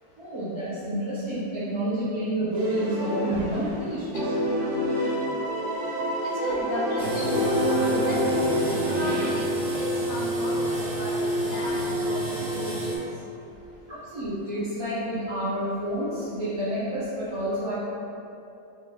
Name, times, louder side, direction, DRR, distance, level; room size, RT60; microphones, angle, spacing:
voice 1, 0.2-4.3 8.9-9.1 13.9-17.7, right 1 dB, 30° right, -12 dB, 0.6 m, -29 dB
sound 1, 2.5-3.8 4.1-9.3, equal, 85° right, 1.2 m, -27 dB
voice 2, 4.1-5.3 5.7-5.8 6.2-13.8, equal, 65° left, -5 dB, 0.9 m, -35 dB
sound 2, 7.0-13.0, equal, 60° right, 1.6 m, -29 dB
5.5 x 3.2 x 2.3 m, 2.8 s
omnidirectional pair, 1.7 m